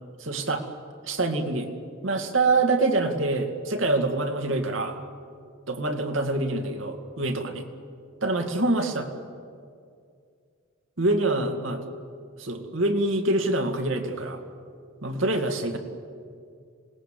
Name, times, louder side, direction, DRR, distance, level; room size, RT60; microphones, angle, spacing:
voice 1, 0.2-0.6 1.0-1.7 2.0-5.0 5.7-7.6 8.2-9.1 11.0-11.8 12.4-14.4 15.0-15.8, right 2 dB, 70° right, 5 dB, 2.3 m, -25 dB
27.0 x 19.5 x 7.6 m, 2.3 s
head